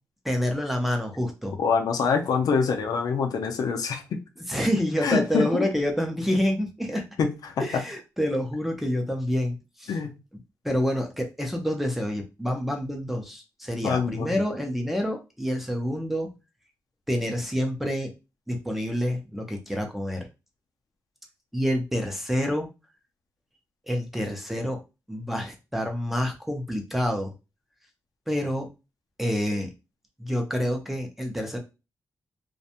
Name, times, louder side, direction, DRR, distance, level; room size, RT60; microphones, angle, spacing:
voice 1, 0.2-1.6 4.5-7.0 7.6-9.9 10.6-16.3 17.1-18.1 18.5-20.3 21.5-22.7 23.9-24.8 25.1-27.3 28.3-28.7 29.2-29.7 30.2-31.6, equal, 5° right, 0.4 m, -27 dB
voice 2, 1.6-4.2 5.0-5.6 7.2-7.6 9.9-10.1 13.8-14.4, left 5 dB, 90° left, 0.5 m, -25 dB
2.5 x 2.1 x 2.8 m
wide cardioid pair, 170°, 6 cm